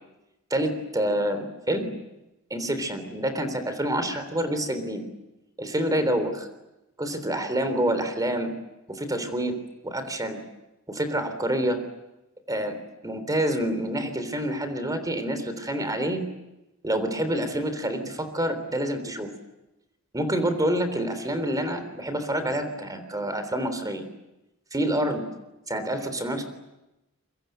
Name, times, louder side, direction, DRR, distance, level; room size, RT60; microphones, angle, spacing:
voice 1, 0.5-1.9 2.5-5.0 5.6-6.5 7.0-8.5 8.9-9.5 9.8-10.4 10.9-11.8 12.5-12.8 13.0-16.2 16.8-19.3 20.1-24.0 24.7-25.2 25.7-26.4, right 1 dB, 15° right, 10 dB, 3.6 m, -27 dB
28.0 x 23.5 x 8.1 m, 0.95 s
head